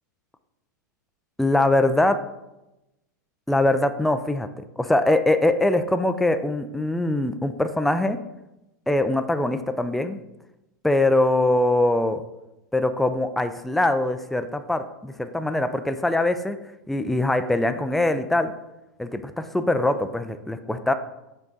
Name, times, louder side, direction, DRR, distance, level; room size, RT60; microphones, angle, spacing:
voice 1, 1.4-2.2 3.5-8.2 8.9-10.2 10.8-12.2 12.7-16.6 16.9-18.5 19.0-20.9, left 1 dB, ahead, 9 dB, 0.4 m, -22 dB
6.0 x 4.4 x 3.9 m, 0.94 s
hypercardioid pair, 110°, 10 cm